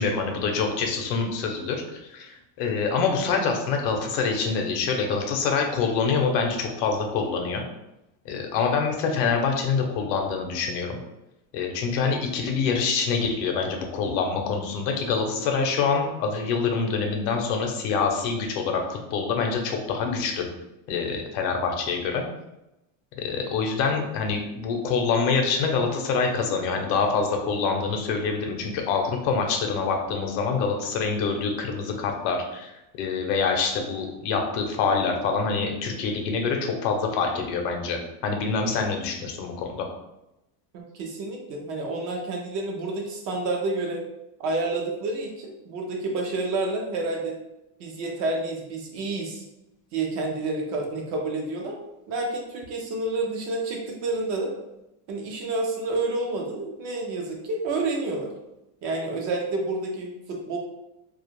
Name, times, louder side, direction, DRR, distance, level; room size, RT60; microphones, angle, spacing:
voice 1, 0.0-7.6 8.2-11.0 11.5-20.5 20.9-22.3 23.2-39.9, left 5 dB, 85° left, 2 dB, 0.7 m, -26 dB
voice 2, 40.7-44.0 44.4-47.4 47.8-49.4 49.9-51.8 52.1-54.5 55.1-58.3 58.8-60.6, right 2 dB, 40° right, 1 dB, 0.4 m, -29 dB
2.3 x 2.0 x 2.9 m, 0.90 s
cardioid pair, 155°, 48 cm